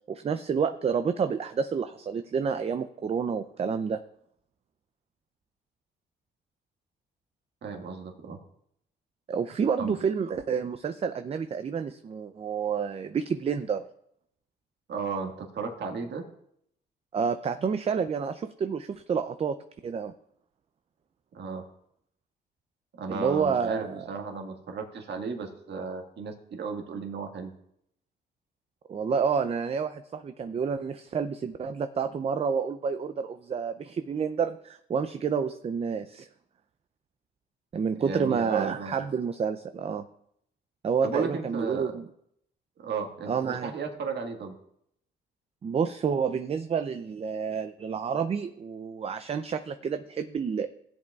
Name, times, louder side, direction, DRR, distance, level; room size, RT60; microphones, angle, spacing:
voice 1, 0.1-4.0 9.3-13.8 17.1-19.6 19.8-20.1 23.1-24.0 28.9-36.3 37.7-40.1 40.8-42.1 43.3-43.7 45.6-50.7, right 6 dB, 30° right, 9 dB, 0.4 m, -29 dB
voice 2, 7.6-8.4 9.8-10.0 14.9-16.2 21.3-21.6 22.9-27.5 38.0-38.9 41.0-42.0 42.8-44.5, right 5 dB, 60° right, 3 dB, 1.7 m, -34 dB
16.5 x 8.0 x 2.4 m, 0.72 s
cardioid pair, 90°, 20 cm